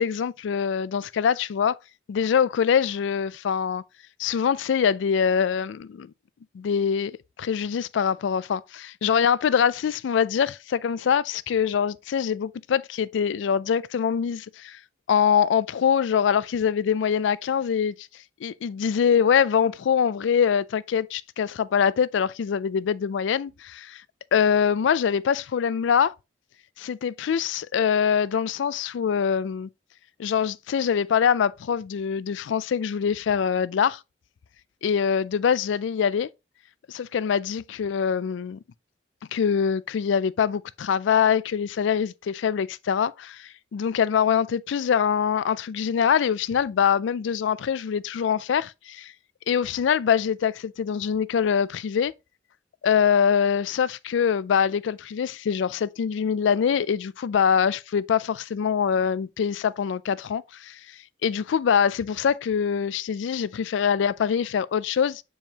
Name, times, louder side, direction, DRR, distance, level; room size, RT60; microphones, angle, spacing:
voice 1, 0.0-1.8 2.1-3.8 4.2-6.1 6.5-7.1 7.4-14.8 15.1-17.9 18.4-24.0 24.3-26.1 26.8-29.7 30.2-34.0 34.8-36.3 36.9-38.6 39.3-49.1 49.5-52.1 52.8-60.8 61.2-65.2, left 7 dB, 75° left, 0.3 m, -24 dB
7.1 x 4.6 x 2.9 m
head